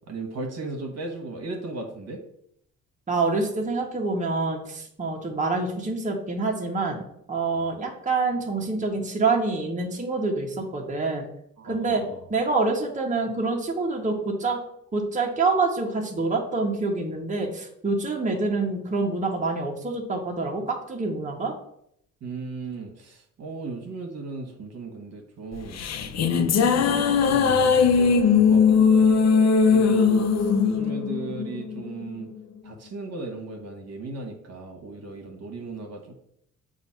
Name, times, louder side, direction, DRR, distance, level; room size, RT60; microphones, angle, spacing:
voice 1, 0.1-2.2 7.5-7.6 11.6-12.2 22.2-28.6 28.9-29.1 29.7-32.3 32.6-36.2, right 3 dB, 55° right, 2 dB, 1.4 m, -37 dB
voice 2, 3.1-7.0 7.3-11.2 11.6-12.0 12.3-14.6 14.9-21.5, right 3 dB, 25° right, -1 dB, 1.3 m, -26 dB
sound 1, 25.5-32.1, left 5 dB, 60° left, 0.7 m, -20 dB
7.0 x 2.7 x 5.7 m, 0.72 s
cardioid pair, 90°, 30 cm